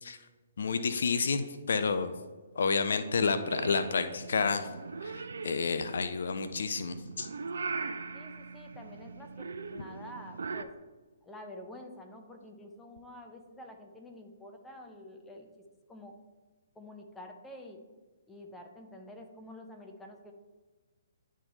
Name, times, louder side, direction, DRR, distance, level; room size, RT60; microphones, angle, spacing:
voice 1, 0.6-2.1 2.6-4.7 5.0-7.3, left 5 dB, 60° left, 10 dB, 0.4 m, -30 dB
Purr / Meow, 3.2-10.6, right 4 dB, 65° right, 0.4 m, -40 dB
voice 2, 8.1-10.7 11.2-15.5 15.9-16.1 16.8-17.8 18.3-20.3, left 1 dB, 10° left, 2 dB, 0.8 m, -48 dB
10.5 x 3.7 x 4.0 m, 1.3 s
figure-of-eight pair, 125°, 0 cm